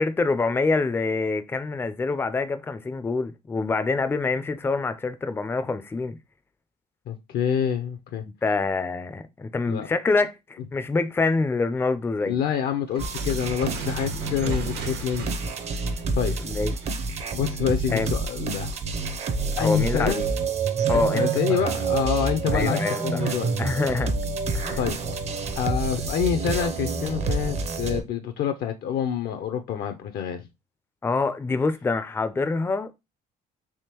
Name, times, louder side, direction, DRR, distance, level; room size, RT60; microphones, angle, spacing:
voice 1, 0.0-6.2 8.4-12.4 14.4-14.5 16.0-16.1 16.4-16.7 17.9-18.1 19.6-20.3 20.9-21.6 22.5-24.1 24.5-24.8 31.0-32.9, left 3 dB, 15° left, 0.4 m, -26 dB
voice 2, 7.1-8.2 9.7-9.9 12.2-15.3 16.2-16.3 17.3-18.7 19.6-20.2 20.9-23.5 24.8-25.0 25.6-30.4, left 8 dB, 65° left, 0.5 m, -27 dB
sound 1, 12.9-17.1, right 5 dB, 75° right, 1.0 m, -40 dB
sound 2, 13.0-28.0, right 4 dB, 40° right, 0.6 m, -28 dB
3.5 x 2.9 x 2.8 m
cardioid pair, 110°, 17 cm